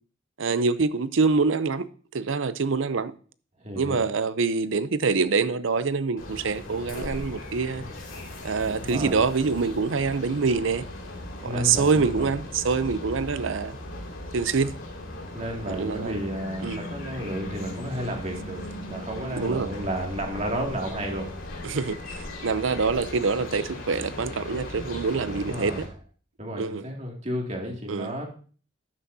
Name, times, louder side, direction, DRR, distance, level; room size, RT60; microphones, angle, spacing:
voice 1, 0.4-1.9 2.1-3.1 3.8-7.8 8.4-10.8 11.4-13.8 14.3-14.7 15.7-16.2 16.6-16.8 19.3-19.7 21.6-22.0 22.4-25.8 26.6-26.8 27.9-28.1, right 4 dB, 75° right, 0.6 m, -25 dB
voice 2, 3.6-4.0 8.6-9.3 11.4-12.3 15.3-21.3 25.2-25.9 26.4-28.2, equal, 35° right, 2.4 m, -32 dB
sound 1, 6.2-25.9, left 1 dB, 85° left, 2.7 m, -38 dB
12.5 x 9.7 x 2.8 m
head